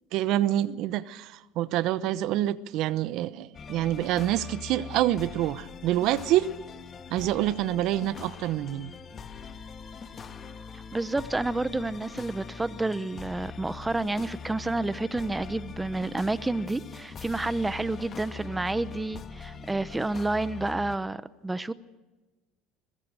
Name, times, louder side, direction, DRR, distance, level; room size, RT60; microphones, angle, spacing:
voice 1, 0.1-6.5 7.1-8.9, right 13 dB, 60° right, 0.8 m, -27 dB
sound 1, 3.5-21.0, left 6 dB, 35° left, 1.6 m, -42 dB
voice 2, 10.7-21.7, right 2 dB, 10° right, 0.8 m, -30 dB
21.5 x 21.5 x 6.5 m
supercardioid pair, 110°, 0 cm